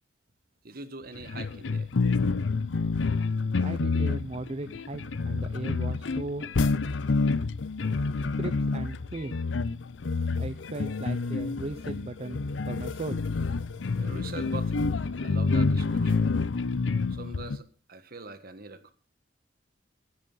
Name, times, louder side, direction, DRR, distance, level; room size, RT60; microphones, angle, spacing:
voice 1, 0.6-1.9 13.9-14.9 15.2-16.3 17.1-18.9, right 3 dB, 55° right, 10 dB, 1.4 m, -43 dB
sound 1, 1.1-17.6, left 4 dB, 90° left, 0.6 m, -28 dB
voice 2, 3.6-6.5 8.4-9.4 10.3-13.2, right 2 dB, 35° right, 7 dB, 0.7 m, -37 dB
11.0 x 10.5 x 5.5 m, 0.38 s
head